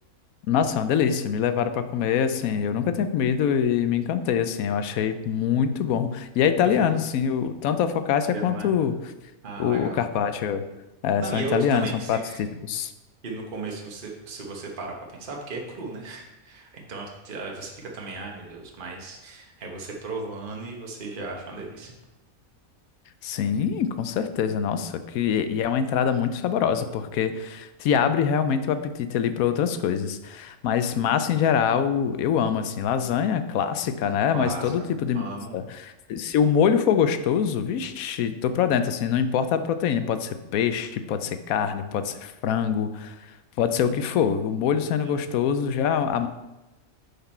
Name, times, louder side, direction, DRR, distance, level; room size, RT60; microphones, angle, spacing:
voice 1, 0.5-9.0 9.6-10.6 11.0-12.9 23.2-43.1 43.6-46.3, left 8 dB, 85° left, 10 dB, 1.1 m, -24 dB
voice 2, 8.2-8.7 9.4-10.0 11.2-12.4 13.2-21.9 30.9-31.0 34.3-34.9 35.1-35.6 45.0-45.1, right 3 dB, 40° right, 0 dB, 1.2 m, -35 dB
7.0 x 5.9 x 4.3 m, 1.0 s
omnidirectional pair, 1.5 m